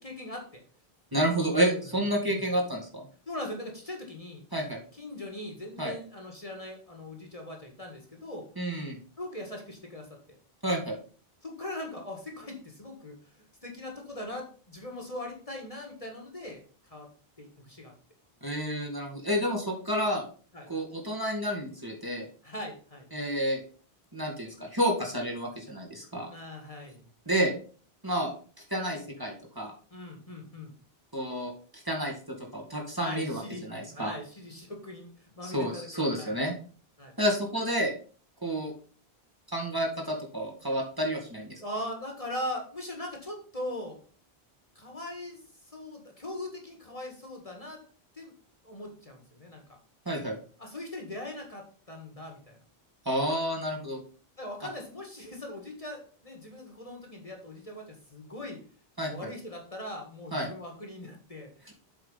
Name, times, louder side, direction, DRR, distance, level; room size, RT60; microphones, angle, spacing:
voice 1, 0.0-0.6 1.4-1.8 2.3-2.4 3.3-4.4 4.9-8.5 9.2-10.4 11.4-13.3 13.6-17.1 17.4-17.9 20.5-20.7 22.4-23.1 26.3-27.0 29.9-30.7 33.0-36.4 37.0-37.1 41.6-44.0 44.8-47.8 48.1-48.3 48.6-49.6 50.6-52.6 54.4-58.6 59.0-61.5, left 1 dB, 35° left, 1 dB, 1.7 m, -40 dB
voice 2, 1.1-3.0 4.5-4.8 5.8-5.9 8.6-9.0 10.6-11.0 18.4-20.2 20.7-22.3 23.1-23.6 24.1-26.3 27.3-27.5 28.0-28.3 28.7-29.7 31.1-34.1 35.4-36.5 37.2-37.9 38.4-38.7 39.5-41.6 50.1-50.4 53.1-54.0 59.0-59.3 60.3-60.5 61.7-61.8, equal, 20° right, -1 dB, 2.0 m, -30 dB
7.8 x 4.9 x 5.5 m, 0.41 s
omnidirectional pair, 1.1 m